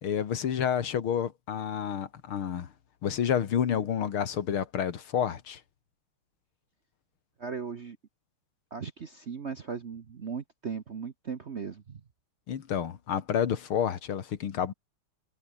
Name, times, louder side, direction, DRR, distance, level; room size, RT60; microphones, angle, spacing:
voice 1, 0.0-2.7 3.0-5.6 12.5-14.7, left 8 dB, 70° left, 2.5 m, -29 dB
voice 2, 7.4-8.0 8.7-12.0, right 6 dB, 45° right, 1.0 m, -37 dB
omnidirectional pair, 2.4 m